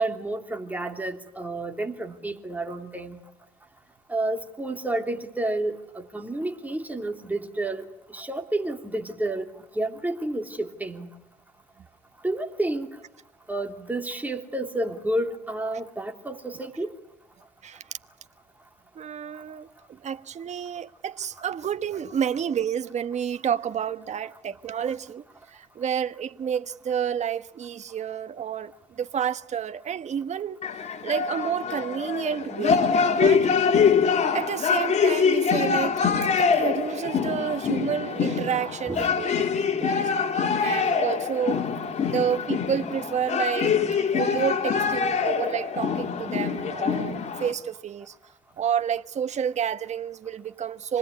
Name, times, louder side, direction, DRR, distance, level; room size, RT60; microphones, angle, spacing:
voice 1, 0.0-3.2 4.1-9.5 9.7-11.1 12.2-12.9 13.5-16.9 38.9-39.1, right 2 dB, 10° right, 3.0 m, -30 dB
voice 2, 19.0-25.2 25.5-30.6 31.0-32.8 33.1-33.5 34.3-36.0 36.4-40.1 40.6-41.6 42.1-43.7 44.1-48.1 48.6-51.0, right 8 dB, 45° right, 1.2 m, -29 dB
sound 1, 30.6-47.5, left 6 dB, 45° left, 3.4 m, -24 dB
26.0 x 20.5 x 9.6 m
cardioid pair, 110°, 17 cm